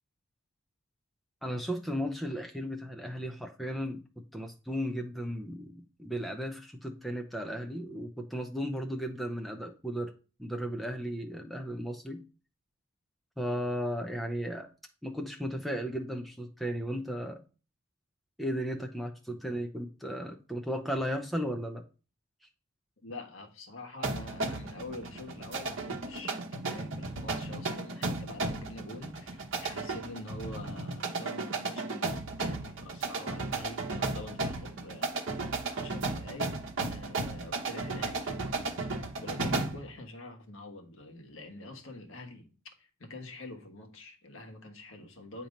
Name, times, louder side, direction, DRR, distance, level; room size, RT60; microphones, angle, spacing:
voice 1, 1.4-4.0 4.3-10.1 10.4-12.2 13.4-14.7 15.0-17.4 18.4-21.8, equal, ahead, 0.6 m, -35 dB
voice 2, 23.0-35.2 35.7-36.6 36.9-42.5 42.8-45.5, left 2 dB, 65° left, 1.3 m, -45 dB
sound 1, 24.0-39.9, right 3 dB, 60° right, 0.9 m, -35 dB
8.5 x 2.9 x 5.2 m
head